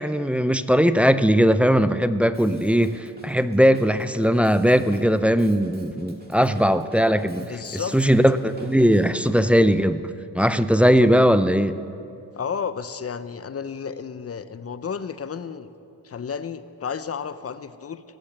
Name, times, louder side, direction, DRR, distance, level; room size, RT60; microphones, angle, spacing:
voice 1, 0.0-10.1 10.3-11.8, equal, 5° right, 12 dB, 0.5 m, -19 dB
Drum kit, 2.3-9.8, right 1 dB, 20° right, 1.8 m, -46 dB
voice 2, 7.4-8.0 10.7-11.1 12.3-15.7 16.0-18.0, left 6 dB, 35° left, 13 dB, 0.7 m, -32 dB
17.5 x 7.1 x 7.9 m, 2.6 s
cardioid pair, 65°, 42 cm